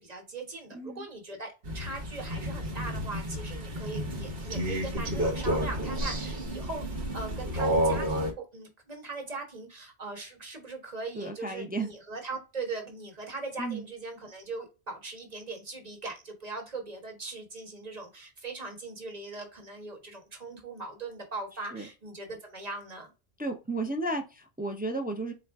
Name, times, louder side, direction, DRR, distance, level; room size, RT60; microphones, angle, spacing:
voice 1, 0.0-23.1, right 3 dB, 40° right, 2 dB, 1.3 m, -40 dB
voice 2, 0.7-1.1 6.6-6.7 11.1-11.9 13.6-13.8 21.7-21.8 23.4-25.3, right 2 dB, 15° right, 4 dB, 0.4 m, -33 dB
Crow, 1.6-8.3, equal, 60° right, 1.1 m, -31 dB
4.2 x 2.4 x 3.3 m, 0.28 s
omnidirectional pair, 1.1 m